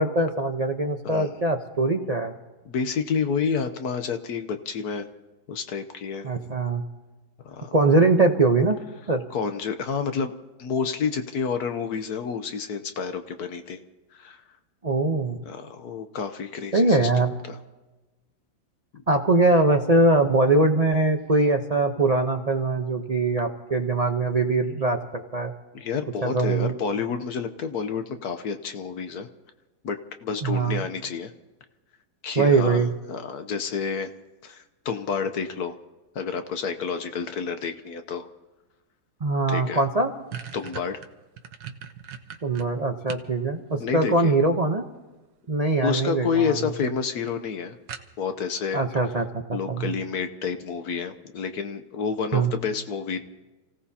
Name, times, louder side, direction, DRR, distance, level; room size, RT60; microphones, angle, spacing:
voice 1, 0.0-2.3 6.2-6.8 7.7-8.8 9.1-9.2 14.8-15.4 16.7-17.3 19.1-25.5 26.2-26.7 30.4-30.9 32.3-32.9 39.2-40.1 42.4-44.8 45.5-46.7 48.7-49.9 52.3-52.5, right 2 dB, 40° right, 3 dB, 0.5 m, -22 dB
voice 2, 2.7-5.1 5.5-6.3 7.4-7.7 9.3-10.3 10.6-13.8 14.1-14.4 15.5-17.1 17.5-17.6 25.7-29.3 29.8-31.3 32.2-32.8 33.1-34.1 34.4-35.7 36.1-38.3 39.5-39.8 40.5-41.0 43.8-44.3 45.8-47.8 48.2-48.8 49.5-53.2, left 6 dB, 60° left, 8 dB, 1.2 m, -29 dB
sound 1, 39.4-39.5 39.8-43.3 43.7-44.6 45.7-46.1 46.4-46.5 46.9-47.0 47.3-47.4 47.9-48.4, right 8 dB, 75° right, 1.6 m, -39 dB
29.0 x 16.5 x 2.8 m, 1.2 s
omnidirectional pair, 2.1 m